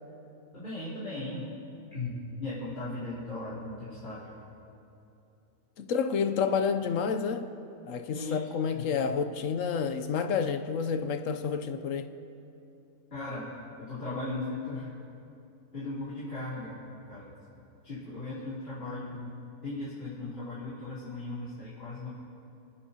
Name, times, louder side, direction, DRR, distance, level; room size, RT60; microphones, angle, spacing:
voice 1, 0.5-1.5 1.9-4.3 8.1-8.4 8.7-8.9 13.1-13.5 13.9-14.9 15.7-16.8 17.1-17.3 17.8-19.3 19.6-22.1, left 2 dB, 45° left, 3.8 m, -37 dB
voice 2, 5.8-7.5 7.9-12.1, left 6 dB, 70° left, 1.0 m, -29 dB
30.0 x 10.0 x 2.8 m
omnidirectional pair, 1.5 m